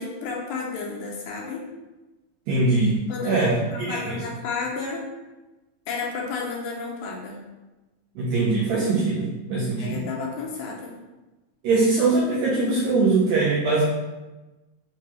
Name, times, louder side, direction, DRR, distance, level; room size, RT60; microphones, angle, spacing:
voice 1, 0.0-1.6 3.1-5.0 5.9-7.4 9.8-11.0, left 4 dB, 80° left, -1 dB, 2.0 m, -32 dB
voice 2, 2.5-3.0 3.2-3.5 3.8-4.2 8.2-10.0 11.6-13.8, right 3 dB, 80° right, -5 dB, 1.6 m, -22 dB
5.9 x 2.2 x 3.0 m, 1.1 s
omnidirectional pair, 3.8 m